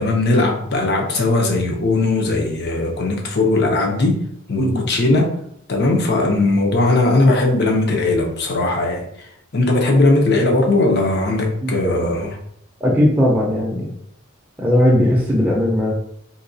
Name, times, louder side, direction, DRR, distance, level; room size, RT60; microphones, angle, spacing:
voice 1, 0.0-4.2 4.5-5.4 5.7-9.1 9.5-12.3, left 2 dB, 55° left, 2 dB, 0.7 m, -18 dB
voice 2, 4.6-4.9 11.6-12.1 12.8-13.9 14.6-15.9, left 1 dB, 10° right, -5 dB, 0.5 m, -18 dB
3.9 x 2.3 x 2.6 m, 0.68 s
head